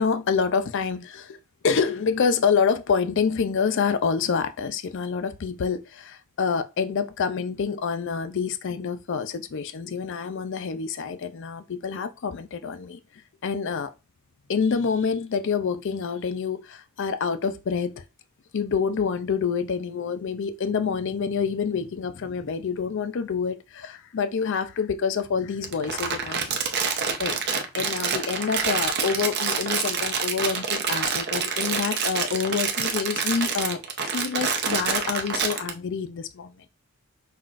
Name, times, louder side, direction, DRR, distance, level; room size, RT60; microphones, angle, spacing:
voice 1, 0.0-1.4 1.6-13.0 13.4-13.9 14.5-18.0 18.5-26.6 27.2-27.4 27.7-33.8 34.1-36.7, left 6 dB, 55° left, 0.4 m, -27 dB
Crumpling crinkling, 25.6-35.7, right 5 dB, 50° right, 0.6 m, -27 dB
5.7 x 2.4 x 2.4 m
head